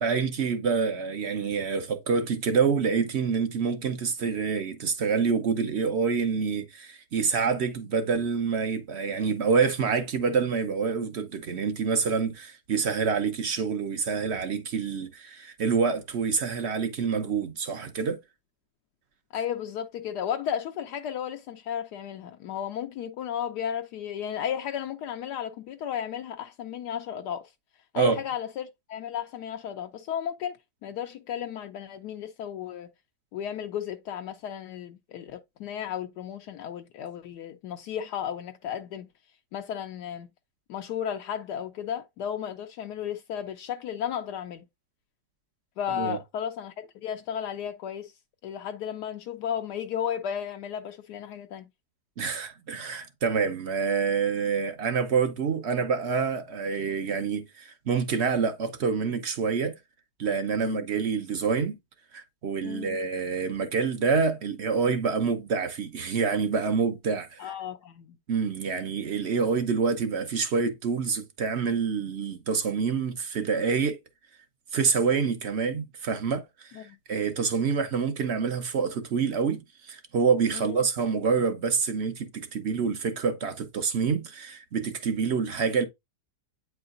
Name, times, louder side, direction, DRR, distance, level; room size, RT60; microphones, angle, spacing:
voice 1, 0.0-18.2 27.9-28.2 46.0-46.2 52.2-59.7 60.2-61.7 62.1-67.5 68.3-74.0 74.7-85.9, right 5 dB, 50° right, 0.9 m, -27 dB
voice 2, 19.3-27.5 27.9-32.9 33.3-39.1 39.5-40.3 40.7-44.7 45.8-48.1 48.4-51.7 60.6-60.9 62.6-63.0 67.4-68.2 76.7-77.0 80.5-80.9, left 9 dB, 75° left, 1.1 m, -34 dB
8.7 x 4.7 x 2.5 m
omnidirectional pair, 1.8 m